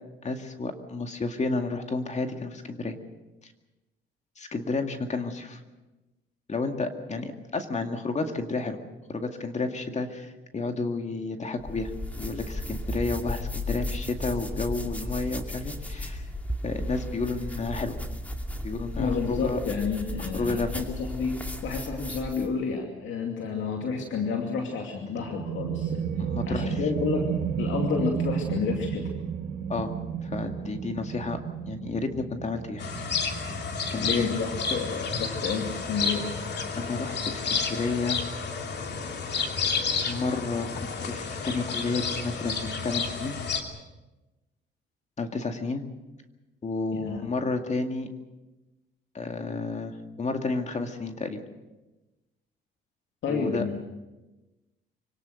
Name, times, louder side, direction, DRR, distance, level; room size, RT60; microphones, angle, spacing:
voice 1, 0.2-3.0 3.4-3.5 4.4-5.6 6.5-8.8 9.1-16.3 16.6-18.0 18.6-19.6 20.3-20.7 26.3-26.9 29.7-29.9 30.2-31.4 31.7-32.8 33.9-34.3 36.8-38.2 40.1-43.4 45.2-45.8 46.6-48.1 49.1-51.4 53.3-53.7, left 3 dB, 35° left, 5 dB, 2.2 m, -31 dB
sound 1, 11.6-22.6, left 1 dB, 5° left, 2.5 m, -34 dB
voice 2, 18.9-26.0 26.4-27.3 27.6-29.1 34.0-36.3 46.9-47.2 53.2-53.8, left 5 dB, 75° left, 1 dB, 2.5 m, -30 dB
sound 2, 25.1-36.4, right 7 dB, 60° right, 1.9 m, -33 dB
sound 3, 32.8-43.6, left 5 dB, 60° left, 2.8 m, -31 dB
25.5 x 18.0 x 6.5 m, 1.1 s
cardioid pair, 90°, 20 cm